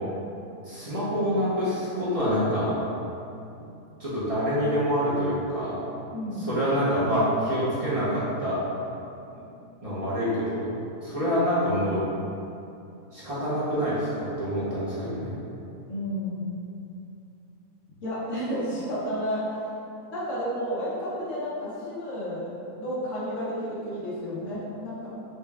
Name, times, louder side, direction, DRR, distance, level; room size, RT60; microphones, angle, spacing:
voice 1, 0.6-2.8 4.0-5.8 6.5-8.6 9.3-9.4 9.8-10.7 11.0-12.1 13.1-15.3, equal, 40° right, -10 dB, 0.5 m, -26 dB
voice 2, 6.1-6.6 15.9-16.4 18.0-19.5 20.1-22.5 22.8-25.1, equal, 60° left, -8 dB, 1.2 m, -31 dB
4.3 x 2.2 x 3.4 m, 2.7 s
omnidirectional pair, 1.6 m